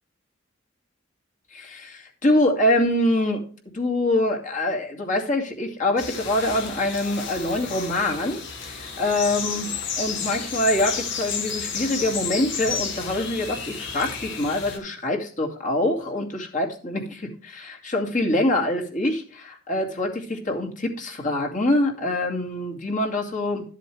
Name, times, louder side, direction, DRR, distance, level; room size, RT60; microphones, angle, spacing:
voice 1, 1.5-3.4 3.7-23.6, left 1 dB, 40° left, 0 dB, 2.4 m, -25 dB
sound 1, 6.0-14.8, left 6 dB, 60° left, 2.5 m, -32 dB
12.5 x 7.5 x 3.3 m, 0.42 s
head